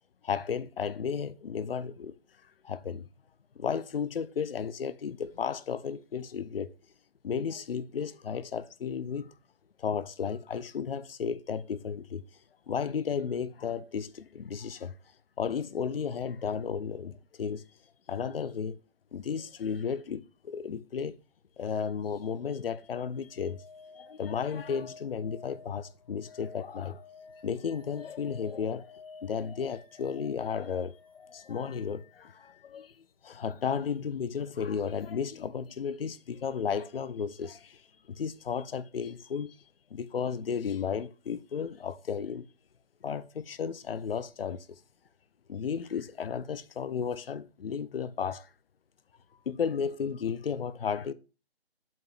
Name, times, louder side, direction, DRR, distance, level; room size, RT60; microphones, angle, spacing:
voice 1, 0.2-2.2 2.6-3.1 3.6-6.7 7.2-9.3 9.8-12.2 12.7-14.9 15.4-17.6 18.1-18.8 19.1-21.2 21.6-23.6 23.9-27.0 27.4-28.9 29.2-32.9 33.2-37.8 38.1-39.6 39.9-42.5 43.0-44.8 45.5-48.5 49.5-51.1, left 6 dB, 60° left, 0.6 m, -34 dB
sound 1, 22.9-32.7 35.0-35.1, left 4 dB, 30° left, 0.9 m, -52 dB
7.6 x 2.9 x 5.7 m
figure-of-eight pair, 160°, 33 cm